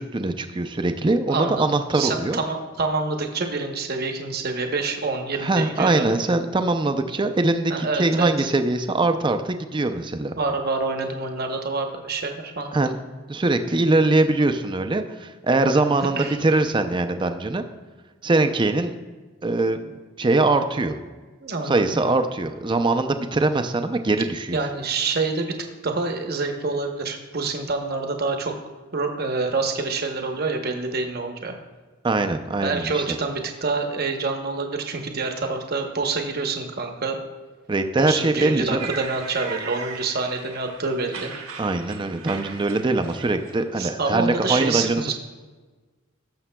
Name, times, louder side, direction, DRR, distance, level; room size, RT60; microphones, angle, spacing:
voice 1, 0.0-2.4 5.4-10.3 12.7-13.0 13.3-17.6 18.2-18.9 19.4-21.0 21.6-24.6 32.0-33.0 37.7-38.9 41.6-45.1, right 2 dB, 20° right, 8 dB, 0.4 m, -22 dB
voice 2, 1.3-1.6 1.9-6.1 7.7-8.5 10.4-12.8 16.2-16.4 21.4-21.8 24.5-25.5 25.8-28.5 28.9-31.5 32.6-37.2 38.0-41.3 43.8-45.1, right 3 dB, 45° right, 4 dB, 0.9 m, -27 dB
sound 1, 38.8-43.7, right 5 dB, 75° right, 1.2 m, -38 dB
17.0 x 6.9 x 2.2 m, 1.3 s
head